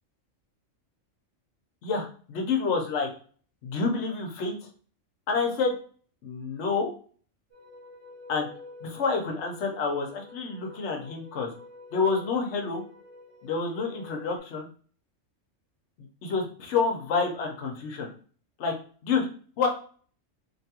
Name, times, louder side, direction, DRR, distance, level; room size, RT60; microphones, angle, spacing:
voice 1, 1.8-3.1 3.6-4.5 5.3-5.7 6.2-6.9 8.3-8.5 8.8-11.5 11.9-12.8 13.4-14.7 16.2-18.1 18.6-18.7 19.0-19.3 19.6-19.7, left 4 dB, 65° left, 2 dB, 1.0 m, -28 dB
sound 1, 7.5-14.4, left 2 dB, 30° right, 0.8 m, -48 dB
2.9 x 2.2 x 2.8 m, 0.43 s
omnidirectional pair, 1.4 m